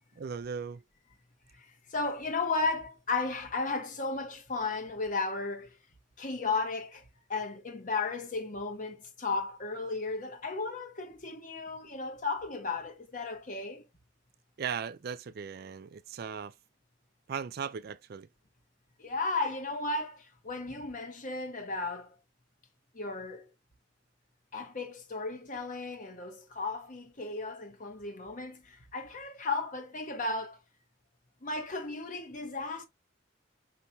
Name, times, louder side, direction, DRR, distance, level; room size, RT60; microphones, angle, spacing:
voice 1, 0.2-0.8 14.6-16.5 17.3-18.3, right 6 dB, 55° right, 0.4 m, -37 dB
voice 2, 1.5-5.8 6.2-13.9 19.0-22.2 22.9-23.5 24.5-30.6 31.4-32.8, left 3 dB, 45° left, 1.1 m, -35 dB
5.6 x 2.9 x 2.7 m
head